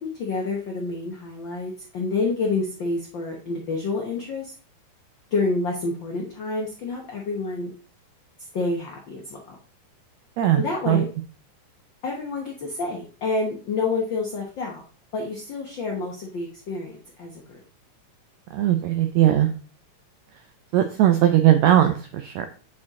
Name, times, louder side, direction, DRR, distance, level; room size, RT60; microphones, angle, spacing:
voice 1, 0.0-4.5 5.3-7.7 8.5-9.5 10.5-11.1 12.0-14.8 15.1-17.6, left 3 dB, 75° left, 0 dB, 1.0 m, -28 dB
voice 2, 10.4-11.0 18.5-19.5 20.7-22.5, right 12 dB, 85° right, 8 dB, 1.6 m, -19 dB
8.6 x 4.3 x 3.6 m, 0.38 s
omnidirectional pair, 3.8 m